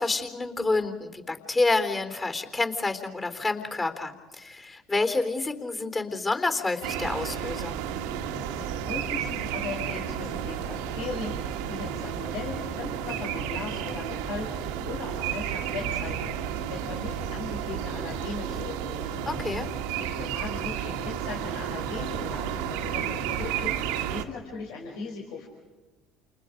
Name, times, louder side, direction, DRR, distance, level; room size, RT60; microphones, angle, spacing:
voice 1, 0.0-7.8 19.3-19.7, left 3 dB, 25° left, 7 dB, 3.8 m, -28 dB
sound 1, 6.8-24.2, right 9 dB, 75° right, 1.7 m, -32 dB
voice 2, 8.6-19.3 20.0-23.7 24.1-25.5, left 4 dB, 75° left, -2 dB, 5.3 m, -38 dB
30.0 x 29.0 x 5.3 m, 1.2 s
hypercardioid pair, 65°, 0 cm